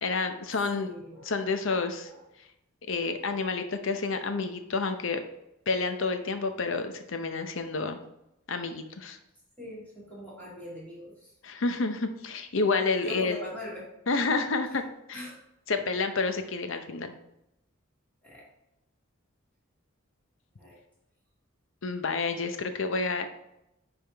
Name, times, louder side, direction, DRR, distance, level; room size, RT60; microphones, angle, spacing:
voice 1, 0.0-0.9 1.3-2.1 2.9-5.2 5.7-8.0 8.5-9.2 11.4-13.4 14.1-14.8 15.1-15.2 15.7-17.1 21.8-23.3, left 4 dB, 65° left, 7 dB, 0.7 m, -29 dB
voice 2, 0.7-1.3 2.0-2.3 9.6-11.3 13.0-13.9 15.1-15.4 18.2-18.4 20.6-20.8, equal, 10° left, -8 dB, 2.2 m, -42 dB
10.0 x 3.5 x 3.4 m, 0.85 s
head